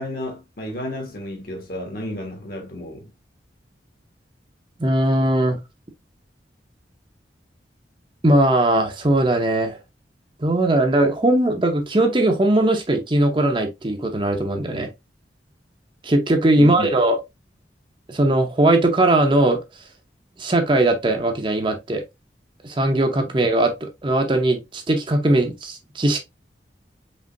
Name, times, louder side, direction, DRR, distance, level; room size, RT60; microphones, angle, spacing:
voice 1, 0.0-3.1 16.5-16.9, left 1 dB, 55° left, 1.6 m, -32 dB
voice 2, 4.8-5.6 8.2-9.8 10.4-14.9 16.0-17.2 18.1-19.6 20.4-22.0 22.6-26.2, right 1 dB, 30° right, 0.7 m, -19 dB
5.2 x 3.1 x 2.6 m
head